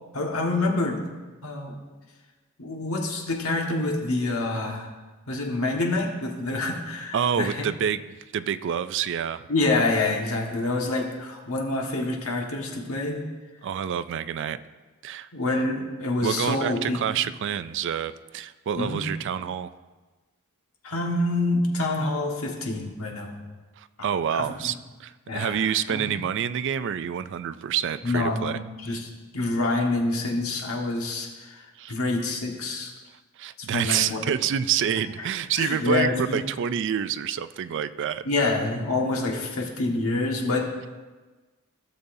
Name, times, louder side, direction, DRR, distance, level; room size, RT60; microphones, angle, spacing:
voice 1, 0.1-1.1 1.4-1.8 2.6-4.9 5.3-7.6 9.5-13.2 15.3-17.0 18.8-19.1 20.8-23.4 24.3-24.7 25.3-25.6 25.9-26.1 28.0-29.1 29.3-32.9 33.6-34.3 35.2-35.3 35.6-36.4 38.2-40.9, left 2 dB, 70° left, 0 dB, 1.5 m, -27 dB
voice 2, 7.1-8.0 8.3-9.4 13.6-14.6 15.0-15.3 16.2-19.7 23.8-24.7 25.0-28.6 31.8-32.0 33.4-38.2, right 8 dB, 55° right, 13 dB, 0.4 m, -27 dB
16.5 x 6.8 x 2.7 m, 1.2 s
head